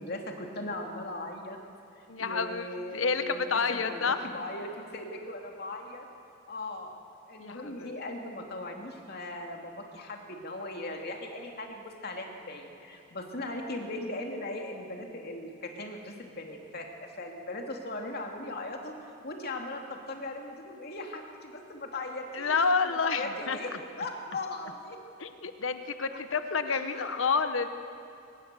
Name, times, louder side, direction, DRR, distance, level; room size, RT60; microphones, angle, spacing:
voice 1, 0.0-1.6 2.0-6.1 6.5-6.9 7.3-25.0 26.7-27.0, left 2 dB, 55° left, 2 dB, 2.6 m, -39 dB
voice 2, 2.1-4.2 7.4-7.9 22.3-23.6 25.2-27.7, left 5 dB, 90° left, 9 dB, 1.0 m, -29 dB
24.0 x 19.0 x 6.9 m, 2.7 s
head